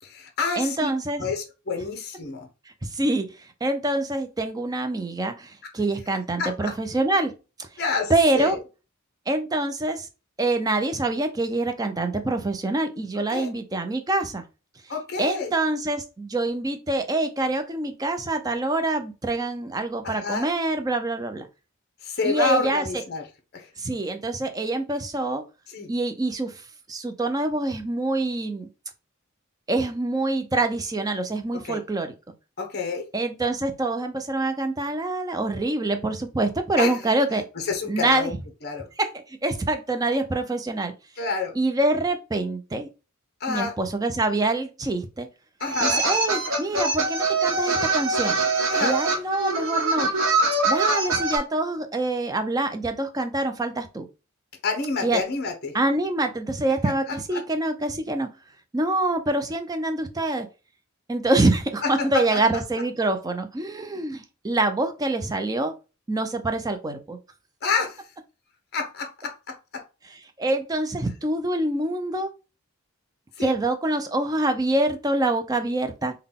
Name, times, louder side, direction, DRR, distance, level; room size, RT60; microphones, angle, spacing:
voice 1, 0.0-0.9 1.2-2.5 5.6-5.7 6.4-6.7 7.8-8.6 13.3-13.5 14.9-15.5 20.0-20.5 22.0-23.2 23.5-23.7 25.7-25.9 31.6-31.8 32.6-33.0 36.8-37.0 37.5-38.3 38.6-38.9 41.2-41.6 43.4-43.8 45.6-46.0 48.7-49.0 54.6-55.7 57.1-57.4 61.8-62.4 67.6-68.1 68.7-69.8 73.4-73.5, left 4 dB, 45° left, 0.7 m, -28 dB
voice 2, 0.6-1.3 2.8-7.3 8.1-8.6 9.3-10.1 10.4-14.4 15.2-21.5 22.2-22.8 23.8-25.4 25.9-28.7 29.7-32.1 33.1-37.4 37.9-38.4 39.0-40.9 41.6-42.9 43.5-45.3 45.8-48.4 48.8-50.1 50.7-54.0 55.0-55.2 55.7-58.3 58.7-60.5 61.1-65.7 66.1-67.2 70.4-72.3 73.4-76.1, right 2 dB, 15° right, 0.4 m, -25 dB
sound 1, 45.6-51.4, right 3 dB, 60° right, 1.0 m, -23 dB
3.8 x 2.2 x 3.5 m
head